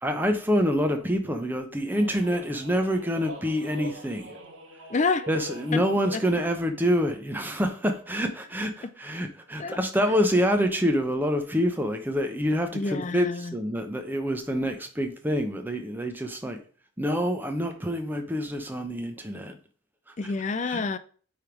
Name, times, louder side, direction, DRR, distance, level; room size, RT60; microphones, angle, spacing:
voice 1, 0.0-4.4 5.3-16.6 17.0-19.6 20.1-20.3 20.7-20.8, equal, 10° right, 0.8 m, -26 dB
sound 1, 1.9-6.6, equal, 65° right, 1.5 m, -43 dB
voice 2, 4.9-5.3 5.7-5.8 6.1-6.2 9.6-9.8 12.7-13.6 20.2-21.0, left 4 dB, 35° left, 0.4 m, -28 dB
8.9 x 3.5 x 4.5 m
head